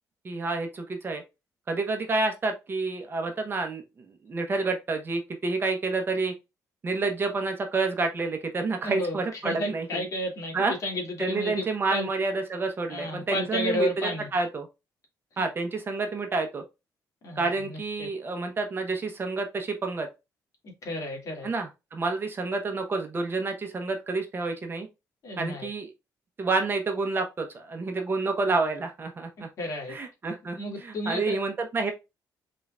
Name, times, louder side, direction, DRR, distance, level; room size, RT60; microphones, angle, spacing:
voice 1, 0.2-1.2 1.7-6.3 6.8-10.1 10.5-10.7 11.2-14.7 15.4-16.6 17.4-20.1 21.4-24.9 25.4-25.9 26.4-29.5 29.9-31.9, right 3 dB, 30° right, 0.9 m, -29 dB
voice 2, 8.8-10.6 10.8-11.5 11.9-12.1 12.9-14.3 15.4-15.5 17.2-18.1 20.6-21.5 25.2-25.7 29.4-29.9 30.6-31.4, left 1 dB, 50° left, 2.1 m, -32 dB
4.2 x 3.8 x 2.4 m
cardioid pair, 120°, 7 cm